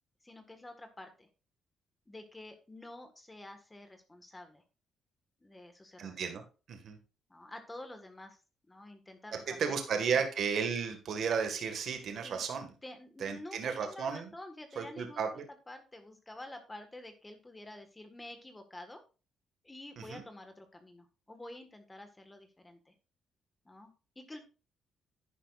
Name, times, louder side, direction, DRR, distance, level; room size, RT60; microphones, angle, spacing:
voice 1, 0.2-1.3 2.1-4.6 5.4-6.2 7.3-8.4 8.7-9.6 9.9-10.2 12.2-12.4 12.8-19.0 19.6-22.9 23.6-24.4, left 1 dB, 15° left, 6 dB, 1.6 m, -49 dB
voice 2, 6.0-6.4 6.7-7.0 9.6-12.7 13.2-14.3 14.8-15.4 20.0-20.2, right 6 dB, 65° right, 5 dB, 1.8 m, -33 dB
10.5 x 10.0 x 2.5 m, 0.33 s
cardioid pair, 90°, 0 cm